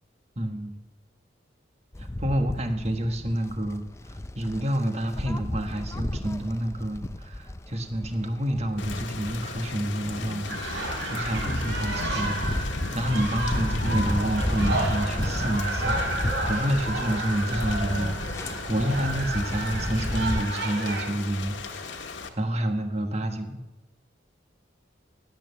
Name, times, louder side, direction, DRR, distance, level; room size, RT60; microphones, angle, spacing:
voice 1, 0.4-0.7 2.0-3.8 4.1-23.6, right 1 dB, 35° right, 6 dB, 1.5 m, -29 dB
sound 1, 1.9-20.4, left 1 dB, 15° left, 0.4 m, -33 dB
Thunder / Rain, 8.8-22.3, left 3 dB, 85° left, 1.4 m, -36 dB
sound 2, 10.5-21.1, right 2 dB, 75° right, 3.3 m, -32 dB
17.5 x 9.2 x 6.9 m, 1.1 s
head